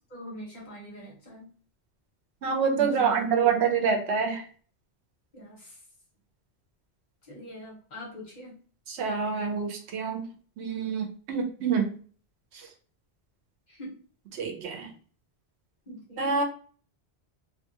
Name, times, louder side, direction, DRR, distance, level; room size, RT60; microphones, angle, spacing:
voice 1, 0.1-1.5 2.7-3.5 5.3-5.7 7.3-8.5 13.7-13.9 15.9-16.3, equal, 45° left, -5 dB, 1.2 m, -42 dB
voice 2, 2.4-4.4 8.9-10.2 10.6-11.9 14.3-14.9 16.2-16.4, right 6 dB, 80° right, 4 dB, 0.9 m, -26 dB
2.5 x 2.4 x 2.7 m, 0.43 s
omnidirectional pair, 1.1 m